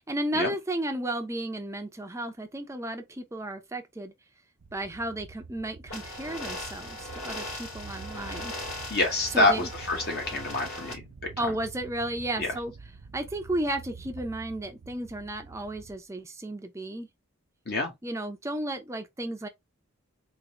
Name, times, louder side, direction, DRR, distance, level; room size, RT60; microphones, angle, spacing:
voice 1, 0.1-4.1 4.7-8.5 9.3-9.7 11.4-12.7 13.1-17.1 18.0-19.5, right 1 dB, 15° right, 0.5 m, -33 dB
sound 1, 4.6-16.0, right 4 dB, 60° right, 0.5 m, -47 dB
sound 2, 5.9-10.9, left 1 dB, 85° left, 2.1 m, -39 dB
voice 2, 8.9-11.5 12.4-12.5 17.7-17.9, left 2 dB, 50° left, 1.1 m, -27 dB
3.7 x 2.6 x 2.9 m
head